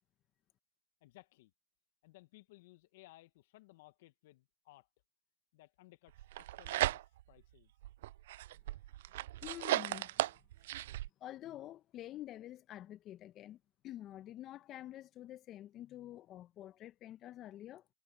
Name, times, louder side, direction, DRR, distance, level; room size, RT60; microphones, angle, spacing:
voice 1, 1.0-1.5 2.0-4.9 5.5-7.7, left 19 dB, 70° left, 1.9 m, -60 dB
sound 1, 6.2-7.4 7.8-11.1, right 15 dB, 75° right, 0.3 m, -36 dB
voice 2, 9.4-10.2 11.2-17.9, left 13 dB, 45° left, 1.7 m, -48 dB
hypercardioid pair, 100°, 0 cm